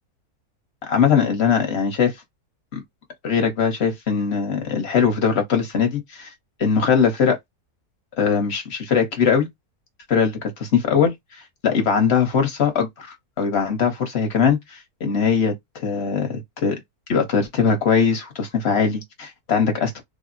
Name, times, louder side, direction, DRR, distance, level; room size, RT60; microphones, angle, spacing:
voice 1, 0.9-2.2 2.7-2.8 3.2-6.3 6.6-7.4 8.2-9.5 10.1-11.1 11.6-16.8 17.1-20.0, left 6 dB, 50° left, 1.0 m, -21 dB
3.4 x 2.0 x 2.5 m
omnidirectional pair, 1.6 m